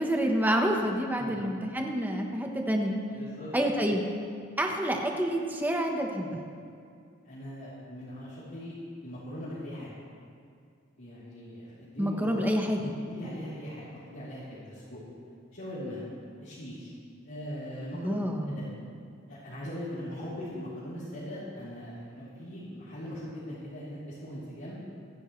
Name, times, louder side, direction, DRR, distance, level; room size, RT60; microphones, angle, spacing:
voice 1, 0.0-3.0 3.5-4.0 4.6-6.4 12.0-12.9 17.9-18.6, equal, 10° right, 2 dB, 1.1 m, -28 dB
voice 2, 3.1-3.5 7.2-8.7 9.0-9.9 11.0-12.5 13.0-15.0 15.5-16.0 16.4-16.9 17.2-18.1 18.4-18.7 19.3-24.8, equal, 55° left, -12 dB, 3.3 m, -40 dB
25.0 x 10.0 x 3.2 m, 2.3 s
head